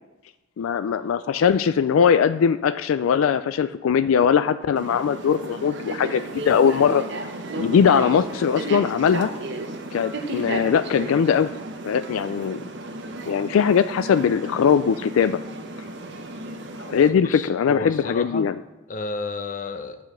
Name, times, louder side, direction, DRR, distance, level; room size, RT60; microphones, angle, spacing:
voice 1, 0.6-7.0 7.6-9.3 9.9-11.5 11.8-12.6 13.2-15.4 16.9-18.5, left 7 dB, 85° left, 12 dB, 0.3 m, -20 dB
sound 1, 4.8-17.1, right 2 dB, 60° right, 0.9 m, -34 dB
voice 2, 17.0-18.5 18.9-20.0, left 3 dB, 40° left, 8 dB, 0.7 m, -32 dB
8.0 x 5.0 x 7.2 m, 1.0 s
head